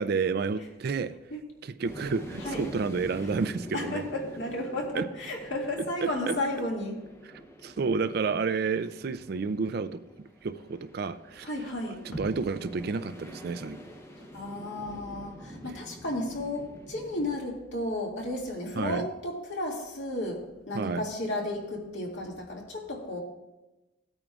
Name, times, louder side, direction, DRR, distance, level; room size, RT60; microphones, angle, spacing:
voice 1, 0.0-1.1 1.6-4.0 4.9-5.0 6.0-6.4 7.6-10.0 10.4-11.5 12.0-13.8 18.8-19.0 20.7-21.0, right 4 dB, 50° right, 11 dB, 0.4 m, -30 dB
sound 1, 1.8-17.4, equal, 15° left, 0.7 m, -46 dB
voice 2, 3.7-7.0 11.4-12.2 14.2-23.2, left 1 dB, 60° left, -1 dB, 2.2 m, -33 dB
17.5 x 8.8 x 2.4 m, 1.0 s
head